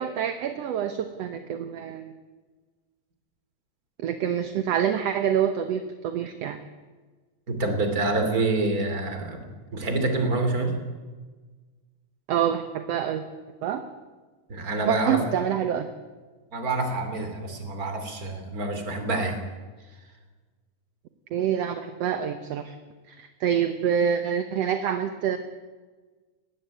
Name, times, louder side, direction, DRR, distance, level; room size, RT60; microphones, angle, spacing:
voice 1, 0.0-2.1 4.0-6.6 12.3-13.2 13.6-13.8 14.9-15.9 21.3-22.8 23.1-25.4, right 9 dB, 65° right, 8 dB, 1.9 m, -26 dB
voice 2, 7.5-9.4 9.7-10.7 14.5-15.2 16.5-19.4, right 2 dB, 30° right, 6 dB, 3.1 m, -27 dB
19.0 x 15.0 x 9.3 m, 1.4 s
omnidirectional pair, 3.4 m